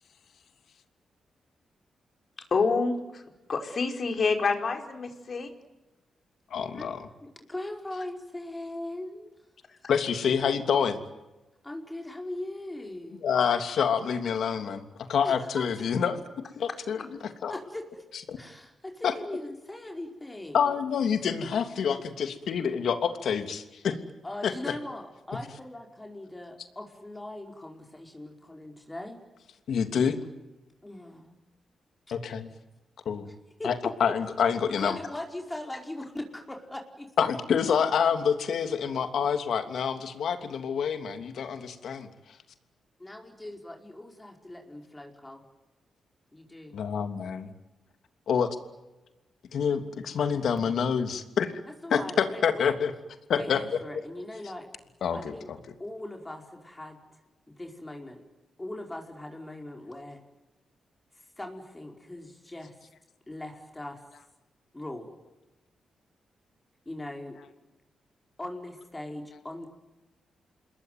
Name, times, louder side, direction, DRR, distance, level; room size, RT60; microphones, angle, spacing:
voice 1, 2.5-3.2 3.5-5.5, left 4 dB, 50° left, 5 dB, 4.8 m, -27 dB
voice 2, 6.5-7.1 9.9-11.0 13.2-16.2 16.6-17.6 18.1-18.4 19.0-19.2 20.5-24.0 24.4-24.7 25.3-25.6 29.7-30.2 32.1-32.5 33.0-33.3 33.6-35.0 37.2-42.1 46.7-47.5 48.3-48.6 49.5-51.5 51.9-52.9 53.3-53.6 53.9-54.0 55.0-55.6, left 7 dB, 75° left, 8 dB, 3.0 m, -27 dB
voice 3, 7.2-9.3 11.6-13.2 15.2-15.6 17.5-18.0 18.4-20.8 24.2-29.2 30.8-31.4 32.1-32.2 33.2-33.3 33.6-33.7 34.8-37.0 43.0-45.4 46.3-46.7 51.8-52.7 53.3-54.7 55.1-55.5 55.8-57.0 57.5-58.2 58.6-60.2 61.1-62.9 63.3-64.0 64.7-65.1 66.8-67.4 68.4-69.7, left 1 dB, 15° left, 2 dB, 5.0 m, -40 dB
28.0 x 21.0 x 9.5 m, 1.0 s
cardioid pair, 85°, 0 cm